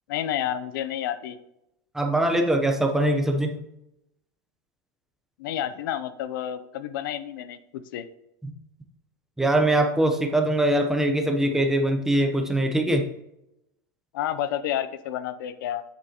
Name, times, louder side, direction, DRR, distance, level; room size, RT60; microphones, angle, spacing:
voice 1, 0.1-1.4 5.4-8.0 14.1-15.8, left 11 dB, 85° left, 13 dB, 0.6 m, -30 dB
voice 2, 1.9-3.6 9.4-13.1, right 1 dB, 5° right, 4 dB, 0.8 m, -22 dB
8.1 x 6.2 x 3.0 m, 0.85 s
supercardioid pair, 150°, 11 cm